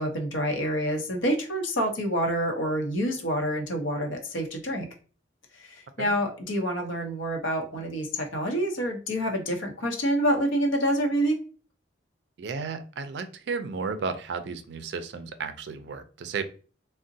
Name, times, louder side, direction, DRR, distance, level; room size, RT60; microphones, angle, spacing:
voice 1, 0.0-4.9 5.6-11.4, equal, 90° left, 3 dB, 0.7 m, -27 dB
voice 2, 12.4-16.4, right 5 dB, 60° right, 9 dB, 0.3 m, -33 dB
3.7 x 2.1 x 2.6 m, 0.38 s
head